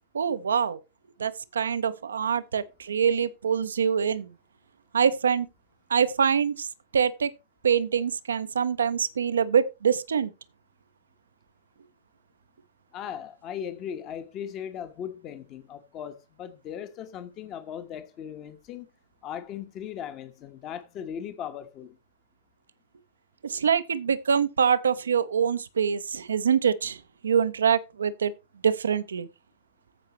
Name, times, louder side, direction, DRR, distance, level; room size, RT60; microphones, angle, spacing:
voice 1, 0.1-0.8 1.2-4.3 4.9-5.5 5.9-6.7 6.9-7.3 7.6-10.3 23.4-28.3 28.6-29.3, right 7 dB, 70° right, 0.6 m, -25 dB
voice 2, 12.9-18.9 19.2-22.0, left 9 dB, 35° left, 1.2 m, -38 dB
14.5 x 5.6 x 3.0 m
figure-of-eight pair, 90°, 0 cm